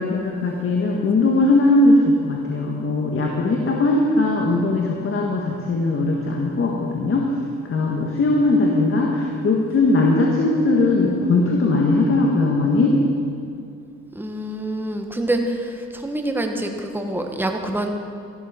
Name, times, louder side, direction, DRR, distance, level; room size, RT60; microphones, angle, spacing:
voice 1, 0.0-7.3 7.7-13.0, left 2 dB, 45° left, -1 dB, 1.8 m, -19 dB
voice 2, 14.1-17.9, right 1 dB, 5° right, 4 dB, 1.3 m, -26 dB
14.0 x 12.0 x 5.2 m, 2.4 s
cardioid pair, 90°, 30 cm